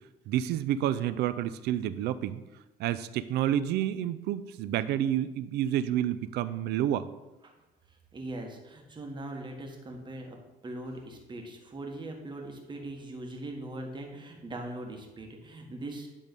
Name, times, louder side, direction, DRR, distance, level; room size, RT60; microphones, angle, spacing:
voice 1, 0.3-2.4 2.8-7.1, right 11 dB, 75° right, 14 dB, 0.5 m, -29 dB
voice 2, 7.9-10.4 10.6-16.1, right 1 dB, 25° right, 2 dB, 1.5 m, -41 dB
10.5 x 3.5 x 5.3 m, 1.1 s
cardioid pair, 110°, 17 cm